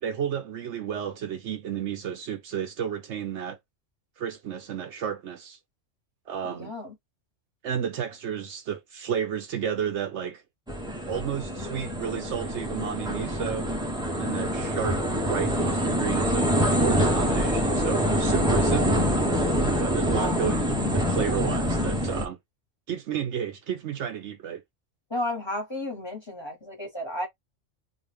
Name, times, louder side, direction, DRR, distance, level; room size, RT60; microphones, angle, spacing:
voice 1, 0.0-3.6 4.2-5.6 6.3-6.7 7.6-10.4 11.1-13.7 14.1-16.5 16.8-19.1 19.8-20.6 20.9-22.4 22.9-24.6, right 8 dB, 70° right, 0.9 m, -32 dB
voice 2, 6.4-6.9 14.2-14.6 20.0-20.5 25.1-27.3, left 1 dB, 20° left, 1.3 m, -33 dB
sound 1, 10.7-22.3, equal, 5° right, 0.5 m, -25 dB
2.5 x 2.5 x 3.3 m
omnidirectional pair, 1.3 m